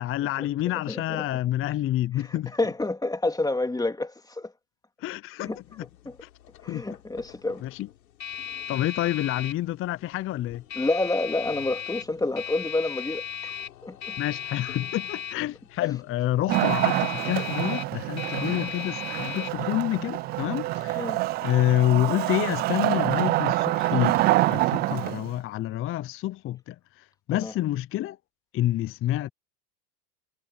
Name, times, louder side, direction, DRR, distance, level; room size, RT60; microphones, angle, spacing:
voice 1, 0.0-2.5 5.0-5.5 6.2-6.3 6.7-6.8 7.6-7.9 8.7-10.6 14.2-21.1 21.4-26.8 27.3-28.2 28.5-29.3, left 14 dB, 25° left, 0.7 m, -28 dB
voice 2, 0.9-1.2 2.2-4.5 5.4-5.6 6.0-6.2 6.6-7.6 10.7-13.6 13.8-14.2 20.9-21.2 27.3-27.5, left 2 dB, 5° left, 3.1 m, -29 dB
sound 1, 5.5-22.3, left 8 dB, 80° left, 4.3 m, -38 dB
Wood, 16.5-25.4, right 18 dB, 20° right, 0.3 m, -26 dB
hypercardioid pair, 100°, 50 cm